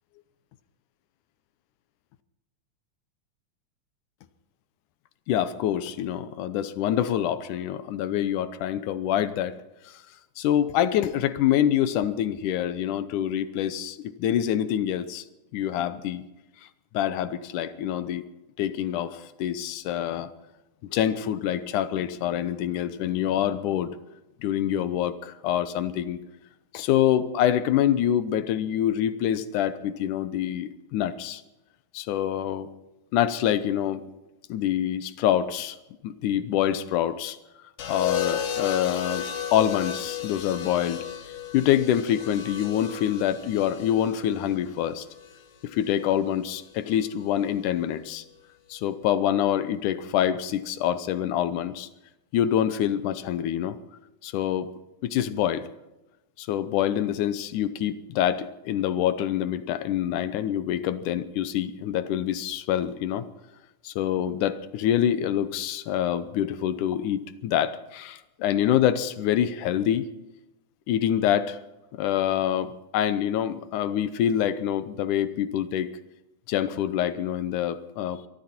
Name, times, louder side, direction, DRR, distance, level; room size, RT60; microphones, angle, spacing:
voice 1, 5.3-9.5 10.4-15.2 15.5-16.2 16.9-18.3 18.6-20.3 20.8-23.9 24.4-26.2 26.7-31.4 31.9-32.7 33.1-34.0 34.5-35.8 36.0-37.4 37.9-41.1 41.5-45.1 45.6-48.2 48.7-51.9 52.3-53.8 54.2-54.7 55.0-55.6 56.4-63.2 63.8-70.1 70.9-71.6 72.0-75.9 76.5-78.2, left 10 dB, 85° left, 13 dB, 2.4 m, -26 dB
sound 1, 37.8-45.9 47.2-47.6, left 9 dB, 60° left, 2.2 m, -34 dB
23.0 x 13.5 x 4.4 m, 0.98 s
omnidirectional pair, 3.5 m